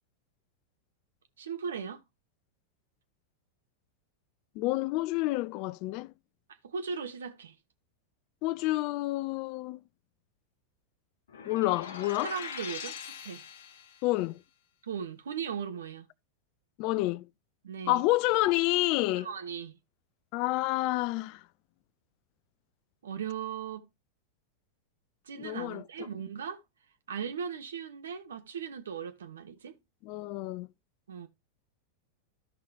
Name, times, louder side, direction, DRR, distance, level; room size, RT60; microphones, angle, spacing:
voice 1, 1.4-2.0 6.6-7.5 12.2-13.4 14.8-16.1 17.6-18.0 19.0-19.8 23.0-23.9 25.2-26.6 27.1-29.7 31.1-31.3, right 7 dB, 65° right, 1.3 m, -38 dB
voice 2, 4.6-6.1 8.4-9.8 11.4-12.3 14.0-14.4 16.8-17.3 17.9-19.3 20.3-21.4 25.4-25.8 30.0-30.7, left 18 dB, 45° left, 0.4 m, -29 dB
sound 1, 11.3-14.1, left 6 dB, 60° left, 1.1 m, -42 dB
14.0 x 5.5 x 2.8 m
figure-of-eight pair, 90°, 0 cm